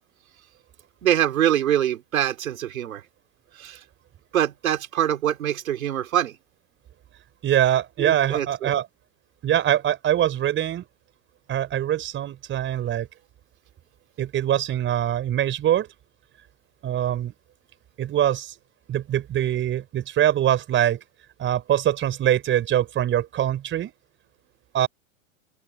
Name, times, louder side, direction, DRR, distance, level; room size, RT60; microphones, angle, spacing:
voice 1, 1.0-3.0 3.5-3.8 4.3-6.4 8.0-8.7, right 11 dB, 85° right, 4.3 m, -24 dB
voice 2, 7.4-8.9 9.4-10.8 11.5-13.1 14.2-15.9 16.8-17.3 18.0-18.5 18.9-21.0 21.4-23.9 24.7-24.9, right 11 dB, 30° right, 5.3 m, -23 dB
open air
hypercardioid pair, 125°, 40 cm